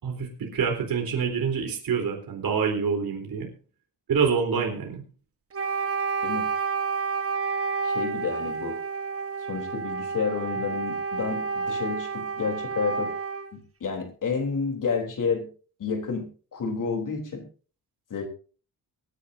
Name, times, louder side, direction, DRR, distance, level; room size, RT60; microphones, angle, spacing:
voice 1, 0.0-3.5 4.1-5.0, right 6 dB, 65° right, 2 dB, 3.9 m, -26 dB
Wind instrument woodwind instrument, 5.5-13.6, right 5 dB, 35° right, 1.5 m, -30 dB
voice 2, 7.8-8.8 9.5-13.1 13.5-15.5 15.8-17.5 18.1-18.3, left 5 dB, 55° left, 3 dB, 3.7 m, -30 dB
24.0 x 9.9 x 2.7 m, 0.38 s
wide cardioid pair, 155°, 38 cm